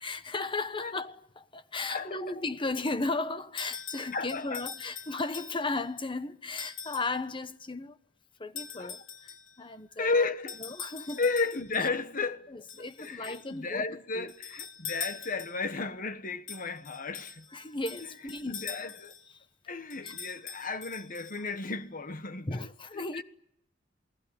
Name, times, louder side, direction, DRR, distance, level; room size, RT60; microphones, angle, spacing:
voice 1, 0.0-8.0 8.4-10.3 10.6-11.2 12.5-13.9 14.1-14.3 17.5-18.5 19.3-19.4 20.0-20.1 22.5-23.2, left 3 dB, 25° left, 1.2 m, -35 dB
voice 2, 1.9-2.4 4.1-4.6 8.8-9.0 10.0-10.6 11.1-12.5 12.8-17.4 18.3-19.1 19.7-22.7 22.9-23.2, left 4 dB, 45° left, 1.4 m, -33 dB
sound 1, 3.6-5.8 6.6-7.2 8.6-9.6 10.5-11.9 12.7-13.5 14.3-15.7 16.5-19.3 19.9-21.7, left 7 dB, 85° left, 3.3 m, -43 dB
28.5 x 19.0 x 10.0 m
head